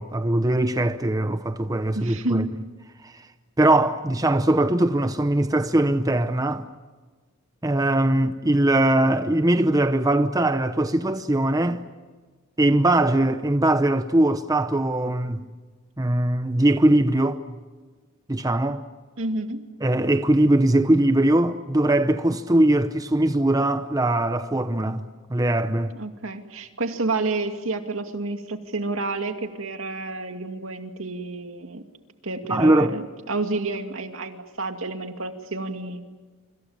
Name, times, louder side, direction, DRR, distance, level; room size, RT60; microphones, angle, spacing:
voice 1, 0.0-2.4 3.0-3.1 3.6-6.6 7.6-11.8 12.6-15.5 16.0-17.4 18.3-18.8 19.8-25.9 32.5-32.9, right 1 dB, 15° right, 0.8 m, -21 dB
voice 2, 1.9-2.5 19.2-19.6 25.9-31.8 32.2-36.1, right 2 dB, 75° right, 2.4 m, -29 dB
26.5 x 26.0 x 7.3 m
head